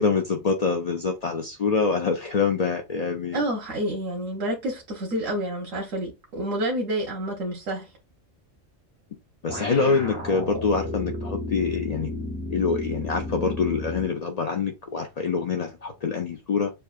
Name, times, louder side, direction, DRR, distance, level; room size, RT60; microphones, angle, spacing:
voice 1, 0.0-3.4 9.4-12.1 12.5-16.7, left 5 dB, 60° left, 0.4 m, -25 dB
voice 2, 3.3-7.9, right 1 dB, 90° right, 1.4 m, -29 dB
sound 1, 9.5-14.2, left 1 dB, 15° left, 1.0 m, -33 dB
6.8 x 2.5 x 2.4 m
omnidirectional pair, 1.3 m